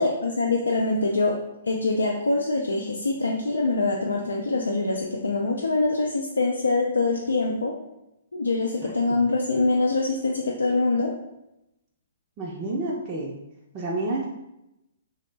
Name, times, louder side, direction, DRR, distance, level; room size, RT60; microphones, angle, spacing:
voice 1, 0.0-1.3 1.6-7.7 8.3-11.1, left 3 dB, 85° left, -1 dB, 0.3 m, -24 dB
voice 2, 8.8-9.2 12.4-13.3 13.7-14.3, right 2 dB, 30° right, -4 dB, 0.5 m, -30 dB
3.2 x 2.0 x 3.2 m, 0.88 s
hypercardioid pair, 130°, 0 cm